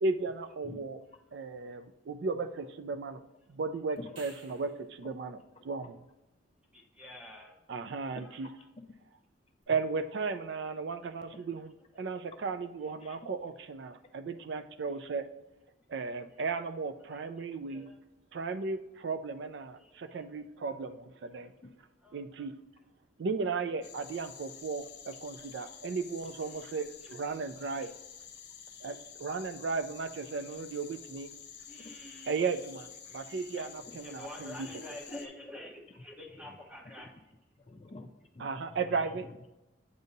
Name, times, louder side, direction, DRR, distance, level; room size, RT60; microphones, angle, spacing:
voice 1, 0.0-1.0 1.3-3.2 3.5-5.4 5.6-5.9 7.7-8.5 9.7-15.3 15.9-17.9 18.3-21.5 22.1-22.5 23.2-27.9 28.8-31.3 32.3-34.7 38.4-39.3, right 4 dB, 60° right, 10 dB, 0.4 m, -35 dB
sound 1, 4.0-4.9 9.6-9.7, right 3 dB, 85° right, 1.2 m, -53 dB
voice 2, 7.0-7.5 17.1-18.0 22.0-22.2 26.4-26.8 31.7-32.4 34.0-37.1, left 1 dB, 5° right, 0 dB, 0.9 m, -47 dB
voice 3, 8.1-8.5 13.0-13.2 21.6-21.7 27.6-27.7 30.5-30.6 31.8-31.9 33.6-34.0 36.0-36.1 36.3-36.6 37.6-39.5, left 2 dB, 30° left, 6 dB, 0.4 m, -49 dB
sound 2, 23.8-35.3, left 8 dB, 55° left, 0.8 m, -50 dB
8.0 x 2.7 x 5.2 m, 1.0 s
head